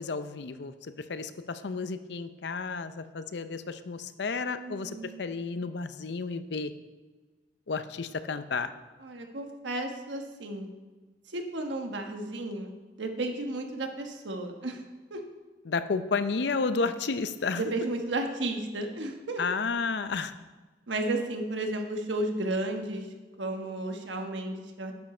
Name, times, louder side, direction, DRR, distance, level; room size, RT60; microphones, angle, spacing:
voice 1, 0.0-6.7 7.7-8.7 15.7-17.7 19.4-20.3, left 4 dB, 70° left, 11 dB, 0.6 m, -32 dB
voice 2, 4.4-5.2 9.0-10.7 11.3-12.7 13.0-14.8 15.1-15.2 17.5-19.5 20.9-23.1 23.4-24.9, right 2 dB, 85° right, 4 dB, 1.3 m, -33 dB
10.5 x 7.5 x 4.4 m, 1.3 s
head